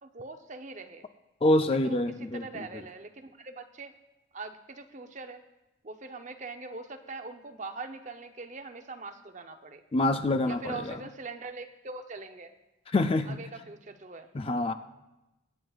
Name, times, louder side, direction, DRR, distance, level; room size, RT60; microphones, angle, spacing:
voice 1, 0.0-1.1 1.6-3.9 4.3-5.4 5.8-9.8 10.4-12.5 13.3-14.3, right 3 dB, 40° right, 8 dB, 0.6 m, -42 dB
voice 2, 1.4-2.6 9.9-10.9 12.9-13.4 14.3-14.7, left 2 dB, 30° left, 9 dB, 0.4 m, -26 dB
23.0 x 9.4 x 2.4 m, 0.99 s
head